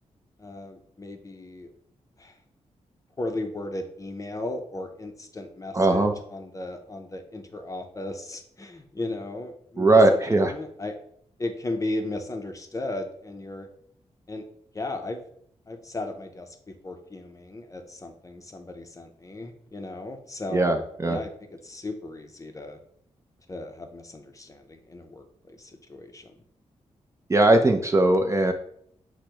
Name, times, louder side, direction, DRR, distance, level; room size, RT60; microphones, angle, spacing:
voice 1, 0.4-1.7 2.2-2.3 3.2-10.0 10.3-11.0 11.4-13.7 14.3-14.5 14.7-15.2 15.7-20.7 21.0-21.3 21.6-22.8 23.5-26.3, left 2 dB, 25° left, 5 dB, 0.6 m, -36 dB
voice 2, 5.7-6.1 9.8-10.5 20.5-21.2 27.3-28.5, right 2 dB, 25° right, 5 dB, 0.4 m, -19 dB
4.9 x 2.1 x 4.5 m, 0.66 s
cardioid pair, 85°, 12 cm